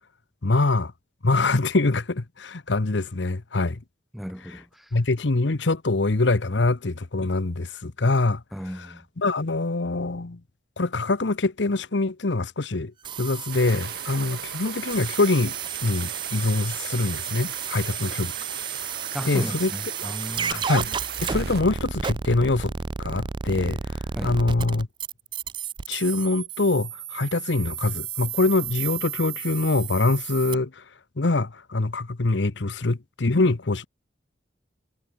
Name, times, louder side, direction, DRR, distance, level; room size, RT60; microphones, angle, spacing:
voice 1, 0.4-0.9 1.2-3.8 4.9-8.4 9.2-10.4 10.8-18.3 19.2-19.7 20.5-21.0 21.2-22.7 23.0-23.8 24.2-24.9 25.9-30.8 31.2-33.9, left 2 dB, 80° left, 1.0 m, -24 dB
voice 2, 4.1-4.9 8.5-9.1 19.1-20.7 24.2-24.4, equal, ahead, 1.8 m, -35 dB
sound 1, 13.0-30.6, right 7 dB, 25° right, 0.3 m, -32 dB
sound 2, 13.5-21.6, right 6 dB, 60° right, 3.8 m, -39 dB
head